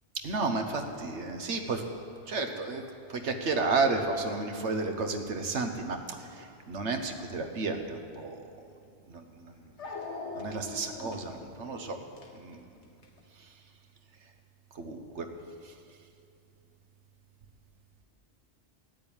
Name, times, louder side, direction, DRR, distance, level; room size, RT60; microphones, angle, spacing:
voice 1, 0.2-1.8 2.3-2.8 3.1-8.4 9.1-9.6 10.3-12.0 12.4-12.6 14.7-15.3 15.6-15.7, right 3 dB, 80° right, 5 dB, 1.5 m, -32 dB
Dog, 8.7-8.8 9.8-13.2, left 3 dB, 80° left, 1.8 m, -42 dB
13.0 x 9.0 x 9.0 m, 2.5 s
omnidirectional pair, 1.2 m